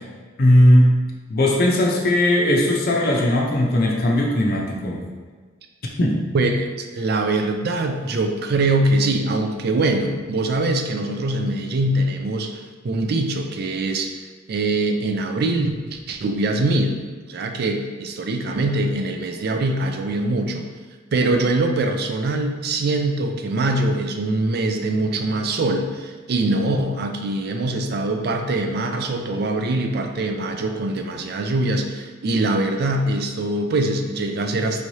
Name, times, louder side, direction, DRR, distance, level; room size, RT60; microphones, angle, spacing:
voice 1, 0.4-0.9 1.3-5.0 6.0-6.2, left 1 dB, 50° left, -2 dB, 0.6 m, -17 dB
voice 2, 6.3-14.1 14.5-17.0 17.3-20.7 21.1-34.8, right 2 dB, 55° right, 5 dB, 0.4 m, -23 dB
4.7 x 3.1 x 2.7 m, 1.5 s
head